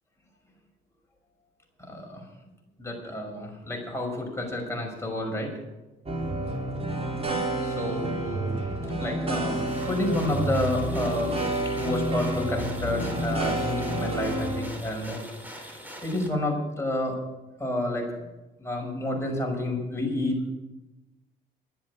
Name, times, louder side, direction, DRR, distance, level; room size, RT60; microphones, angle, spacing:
voice 1, 1.9-2.2 2.8-5.5 7.6-8.6 9.0-11.4 11.8-15.2 15.6-15.8 16.0-17.2 17.6-18.3 18.6-20.4, left 1 dB, 15° left, 0 dB, 5.8 m, -30 dB
sound 1, 6.1-14.6, right 1 dB, 30° right, 3.9 m, -29 dB
sound 2, 9.3-16.3, equal, 10° right, 4.0 m, -43 dB
12.0 x 10.0 x 8.6 m, 1.0 s
cardioid pair, 90°, 20 cm